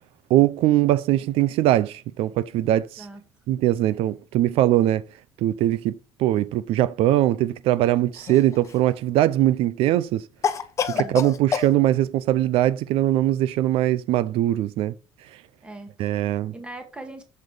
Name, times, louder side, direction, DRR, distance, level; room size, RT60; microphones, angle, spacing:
voice 1, 0.3-3.0 3.5-5.0 5.4-10.3 11.0-14.9 16.0-16.5, right 13 dB, 80° right, 0.6 m, -21 dB
Cough, 8.1-8.9 10.4-11.7, left 7 dB, 30° left, 0.9 m, -27 dB
voice 2, 15.6-16.2 16.5-17.2, right 1 dB, 10° right, 2.0 m, -40 dB
7.7 x 7.6 x 5.0 m
cardioid pair, 160°, 10 cm